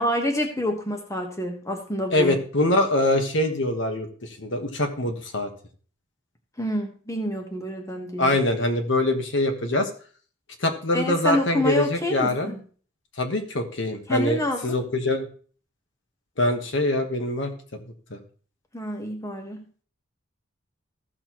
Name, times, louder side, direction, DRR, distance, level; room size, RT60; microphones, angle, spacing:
voice 1, 0.0-2.3 6.6-8.3 10.9-12.6 14.1-14.8 18.7-19.6, left 1 dB, 15° left, 3 dB, 1.2 m, -27 dB
voice 2, 2.1-5.5 8.2-9.9 10.6-12.5 13.2-15.3 16.4-17.5 18.1-18.2, left 1 dB, 60° left, 5 dB, 1.3 m, -24 dB
15.0 x 6.5 x 3.0 m, 0.41 s
head